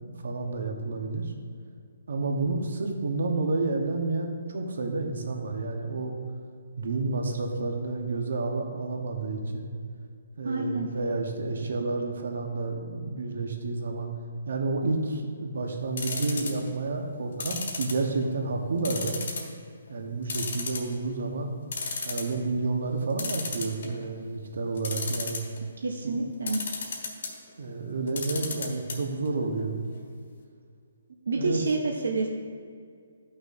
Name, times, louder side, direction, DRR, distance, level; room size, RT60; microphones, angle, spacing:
voice 1, 0.0-1.3 2.1-6.1 6.8-9.7 10.4-14.1 14.4-19.2 19.9-21.5 22.0-25.4 26.0-26.3 27.6-29.8 31.3-31.6, right 3 dB, 65° right, 3 dB, 1.2 m, -30 dB
voice 2, 10.4-10.9 25.8-26.6 31.3-32.3, right 3 dB, 90° right, 1 dB, 0.8 m, -28 dB
sound 1, 16.0-16.7 17.4-18.4 18.8-19.5 19.9-20.0 20.3-21.1 21.5-21.6 21.7-22.3 23.2-24.1 24.8-25.6 26.5-27.3 28.1-29.0 29.3-29.4 29.6-29.7, left 4 dB, 55° left, 1.5 m, -33 dB
13.5 x 6.1 x 2.7 m, 2.2 s
hypercardioid pair, 170°, 0 cm